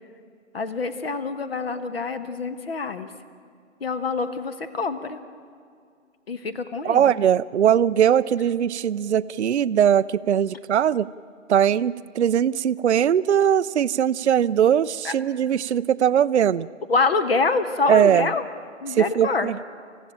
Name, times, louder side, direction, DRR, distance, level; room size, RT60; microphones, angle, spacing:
voice 1, 0.5-3.1 3.8-5.2 6.3-7.0 15.0-15.1 16.9-18.4 18.8-19.5, left 4 dB, 50° left, 10 dB, 1.4 m, -25 dB
voice 2, 6.8-11.1 11.5-16.7 17.9-18.3 18.9-19.5, right 9 dB, 60° right, 13 dB, 0.5 m, -20 dB
27.0 x 15.5 x 9.0 m, 2.3 s
hypercardioid pair, 165°, 39 cm